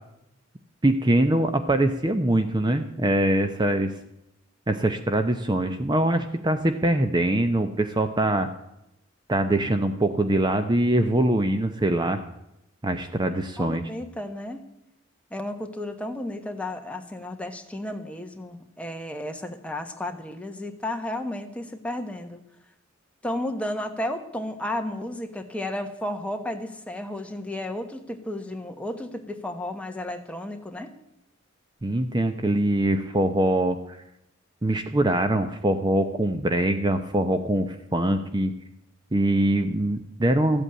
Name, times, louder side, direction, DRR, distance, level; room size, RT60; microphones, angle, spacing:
voice 1, 0.8-3.9 4.7-8.5 9.3-12.2 12.8-13.9 31.8-34.0 34.6-38.5 39.1-40.6, right 1 dB, 20° right, 8 dB, 0.7 m, -23 dB
voice 2, 13.6-14.7 15.3-22.4 23.2-30.9, left 1 dB, 5° left, 5 dB, 1.2 m, -33 dB
14.0 x 8.2 x 8.6 m, 0.84 s
head